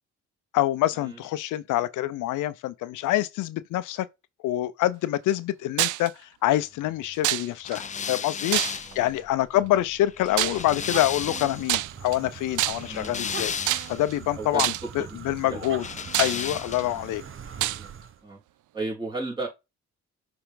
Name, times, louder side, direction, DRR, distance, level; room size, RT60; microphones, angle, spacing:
voice 1, 0.5-4.1 4.4-8.6 9.0-13.5 13.9-15.8 16.2-17.2, left 14 dB, 85° left, 0.6 m, -26 dB
sound 1, 5.8-6.1 7.2-7.8 8.5-9.1 10.4-10.7 11.7-12.2 12.6-13.0 13.7-14.1 14.6-14.9 15.6-15.7 16.1-16.8 17.6-17.8, right 16 dB, 75° right, 0.5 m, -26 dB
sound 2, 7.6-11.7 12.7-14.1 15.8-17.0, left 6 dB, 25° left, 0.4 m, -34 dB
voice 2, 8.8-9.2 9.5-9.6 12.9-13.2 14.4-14.7 15.0-15.8 16.9-17.1 17.6-17.9 18.2-18.4 18.7-19.5, right 3 dB, 15° right, 4.0 m, -35 dB
sound 3, 10.3-18.2, right 8 dB, 45° right, 0.9 m, -42 dB
6.9 x 3.8 x 3.8 m
cardioid pair, 90°, 30 cm